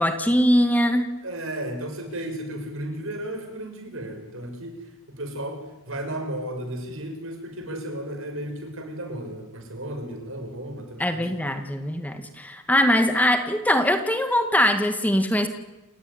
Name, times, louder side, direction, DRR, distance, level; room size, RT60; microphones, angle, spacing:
voice 1, 0.0-1.1 11.0-15.5, equal, 10° left, 7 dB, 1.9 m, -22 dB
voice 2, 1.2-4.8 5.1-11.4, right 1 dB, 70° right, 5 dB, 6.1 m, -34 dB
28.5 x 15.5 x 9.9 m, 1.0 s
head